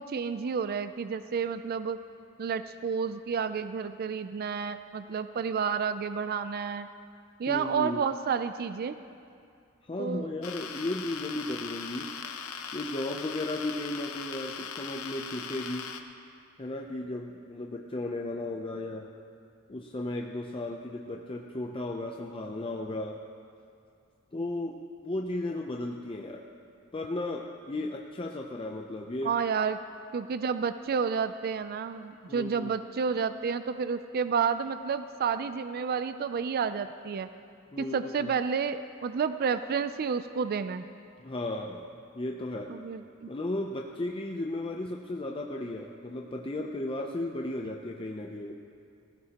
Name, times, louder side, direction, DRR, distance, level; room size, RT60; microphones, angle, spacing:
voice 1, 0.0-2.0 2.4-6.9 7.4-9.0 10.0-10.3 29.2-29.8 30.1-37.3 37.8-40.9 42.7-43.3, right 6 dB, 45° right, 11 dB, 0.4 m, -30 dB
voice 2, 7.5-8.0 9.9-12.1 12.7-15.9 16.6-19.1 19.7-23.2 24.3-26.5 26.9-29.4 32.3-32.7 37.7-38.3 41.2-41.9 42.1-42.8 43.3-48.5, left 2 dB, 25° left, 1 dB, 0.6 m, -35 dB
sound 1, 10.4-16.0, left 7 dB, 75° left, 0.8 m, -40 dB
18.5 x 15.5 x 2.9 m, 2.4 s
head